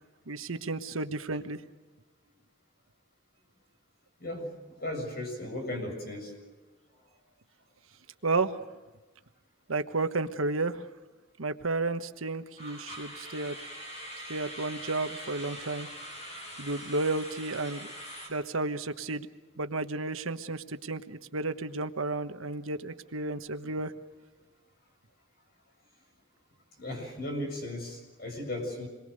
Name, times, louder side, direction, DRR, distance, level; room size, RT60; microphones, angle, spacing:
voice 1, 0.3-1.6 8.2-8.6 9.7-10.8 11.4-13.6 14.3-15.9 16.6-17.9 18.3-19.3 19.6-23.9, right 3 dB, 80° right, 9 dB, 1.3 m, -32 dB
voice 2, 4.8-6.3 26.8-28.9, left 1 dB, 45° left, 3 dB, 7.1 m, -36 dB
sound 1, 6.4-6.7 6.9-7.1 7.6-7.7 12.6-18.3, equal, 30° left, 7.6 m, -43 dB
27.5 x 22.0 x 6.6 m, 1.2 s
head